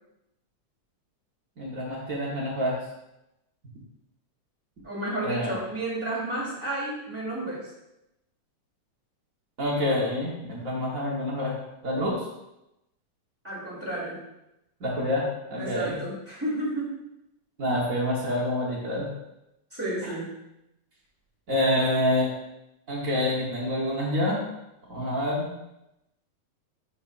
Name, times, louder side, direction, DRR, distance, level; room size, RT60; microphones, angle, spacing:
voice 1, 1.6-2.8 5.2-5.5 9.6-11.6 11.8-12.2 14.8-16.0 17.6-19.1 21.5-22.3 22.9-24.4 24.9-25.5, left 1 dB, 85° right, -5 dB, 0.7 m, -27 dB
voice 2, 4.8-7.7 13.4-14.2 15.6-16.9 19.7-20.3, right 1 dB, 5° right, -7 dB, 2.4 m, -31 dB
11.0 x 5.3 x 2.6 m, 0.89 s
omnidirectional pair, 3.6 m